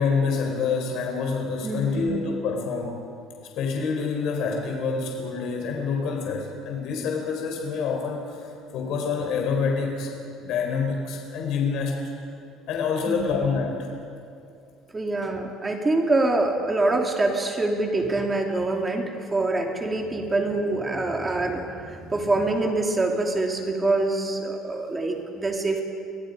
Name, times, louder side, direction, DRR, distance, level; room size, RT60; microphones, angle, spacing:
voice 1, 0.0-3.0 3.6-10.1 10.4-12.0 12.7-13.8, left 5 dB, 55° left, 1 dB, 4.1 m, -27 dB
voice 2, 1.6-2.2 13.1-13.4 14.9-25.8, right 2 dB, 15° right, 2 dB, 2.7 m, -25 dB
29.5 x 25.0 x 5.3 m, 2.5 s
cardioid pair, 170°, 0 cm